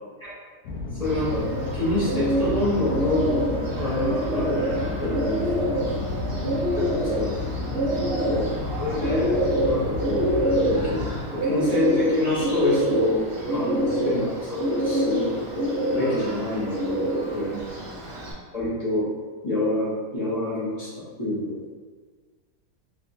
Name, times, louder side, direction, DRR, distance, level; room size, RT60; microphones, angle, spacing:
sound 1, 0.6-11.2, left 3 dB, 70° left, 0.9 m, -32 dB
voice 1, 1.0-1.5 1.7-4.6 5.0-5.5 6.7-6.8 7.2-7.4 8.2-8.4 8.8-9.4 9.6-10.3 10.6-11.0 11.3-15.3 15.9-17.6 18.5-19.1 19.4-21.6, left 1 dB, 30° left, -10 dB, 0.7 m, -27 dB
Bird, 1.0-18.3, right 1 dB, 50° right, 0.6 m, -26 dB
voice 2, 5.6-6.7 7.9-8.5 13.7-14.0 17.5-17.9, right 4 dB, 80° right, -3 dB, 1.2 m, -41 dB
3.3 x 2.8 x 2.5 m, 1.5 s
omnidirectional pair, 1.7 m